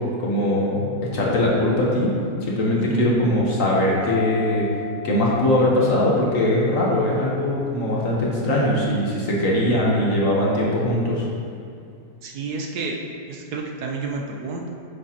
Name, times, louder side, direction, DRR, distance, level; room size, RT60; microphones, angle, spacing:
voice 1, 0.2-2.1 2.4-4.7 5.0-11.2, left 1 dB, 50° left, -4 dB, 1.4 m, -21 dB
Mallet percussion, 4.0-6.5, left 9 dB, 30° right, 2.0 m, -35 dB
voice 2, 12.2-13.0 13.3-14.7, right 4 dB, 70° right, 1 dB, 1.1 m, -30 dB
8.6 x 6.7 x 2.9 m, 2.3 s
omnidirectional pair, 1.9 m